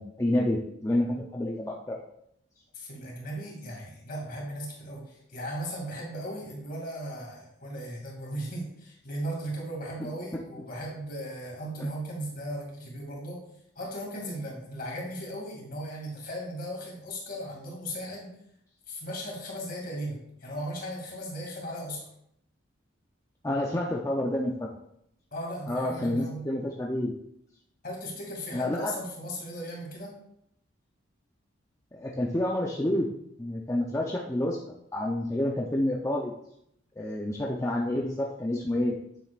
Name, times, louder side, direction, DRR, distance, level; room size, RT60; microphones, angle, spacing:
voice 1, 0.0-2.0 23.4-24.7 25.7-27.1 28.5-28.9 31.9-33.1 33.4-34.6 34.9-36.3 37.0-38.9, left 1 dB, 15° left, -2 dB, 0.6 m, -28 dB
voice 2, 2.7-13.4 13.8-18.3 18.9-22.0 25.3-26.5 27.8-30.1, equal, 45° left, -1 dB, 2.5 m, -37 dB
9.2 x 7.6 x 2.5 m, 0.74 s
head